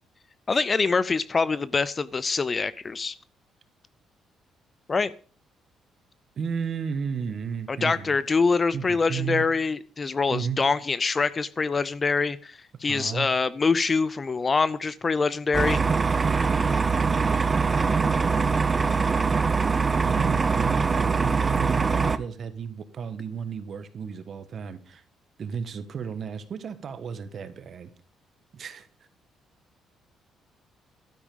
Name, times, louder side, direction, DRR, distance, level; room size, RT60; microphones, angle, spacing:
voice 1, 0.5-3.2 4.9-5.1 7.7-15.8, left 4 dB, 25° left, 18 dB, 0.5 m, -25 dB
voice 2, 6.4-8.1 8.7-9.4 10.3-10.6 12.9-13.3 17.8-18.6 20.0-25.0 25.4-27.9 28.5-28.9, right 7 dB, 40° right, 11 dB, 1.3 m, -33 dB
sound 1, 15.5-22.2, right 4 dB, 20° right, 0.6 m, -23 dB
12.5 x 10.0 x 5.4 m, 0.42 s
cardioid pair, 155°, 0 cm